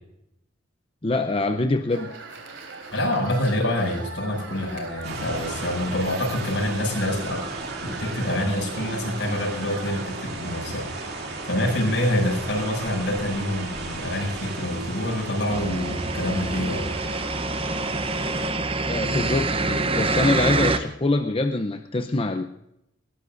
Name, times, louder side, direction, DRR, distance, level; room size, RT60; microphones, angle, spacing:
voice 1, 1.0-2.1 18.9-22.4, left 2 dB, 30° left, 6 dB, 0.6 m, -24 dB
sound 1, 1.9-10.1, right 4 dB, 90° right, 3.7 m, -40 dB
voice 2, 2.9-7.5 7.8-11.2 11.4-16.9, left 1 dB, 70° left, 0 dB, 6.7 m, -26 dB
sound 2, 5.0-18.5, right 2 dB, 55° right, 2.8 m, -35 dB
sound 3, 15.5-20.8, right 3 dB, 30° right, 0.8 m, -26 dB
20.5 x 18.0 x 2.6 m, 0.83 s
head